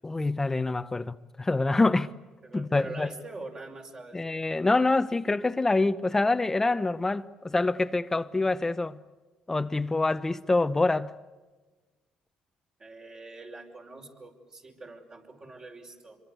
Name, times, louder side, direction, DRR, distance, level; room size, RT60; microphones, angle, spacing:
voice 1, 0.0-2.1 2.5-3.1 4.1-9.0 9.5-11.1, left 2 dB, 20° left, 0.8 m, -26 dB
voice 2, 2.4-4.4 12.8-16.2, right 2 dB, 35° right, 5.4 m, -44 dB
26.0 x 23.0 x 8.2 m
cardioid pair, 85°, 2 cm